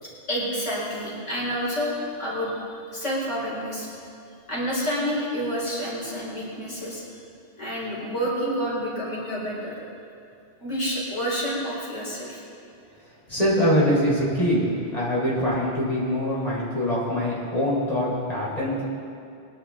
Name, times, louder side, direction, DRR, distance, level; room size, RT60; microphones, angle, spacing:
voice 1, 0.0-2.6 2.9-3.9 4.5-7.0 7.6-9.7 10.6-12.4, equal, 85° left, -6 dB, 4.2 m, -29 dB
voice 2, 13.3-14.6 14.9-18.8, equal, 30° left, -7 dB, 4.1 m, -23 dB
22.5 x 11.0 x 3.7 m, 2.6 s
omnidirectional pair, 1.2 m